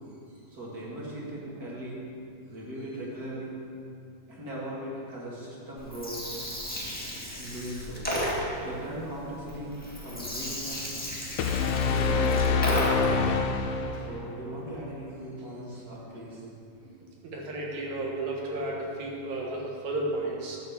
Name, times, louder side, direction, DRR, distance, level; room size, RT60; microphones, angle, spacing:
voice 1, 0.3-2.0 2.5-3.6 4.3-6.2 7.3-8.1 8.5-10.9 11.7-13.1 14.1-16.4, right 1 dB, 35° right, -6 dB, 2.2 m, -39 dB
Gurgling, 5.8-13.3, equal, 5° left, 1.0 m, -34 dB
sound 1, 11.4-14.3, left 5 dB, 90° left, 1.4 m, -26 dB
voice 2, 17.2-20.6, right 2 dB, 70° right, -2 dB, 2.7 m, -33 dB
11.0 x 4.7 x 7.3 m, 2.5 s
omnidirectional pair, 3.5 m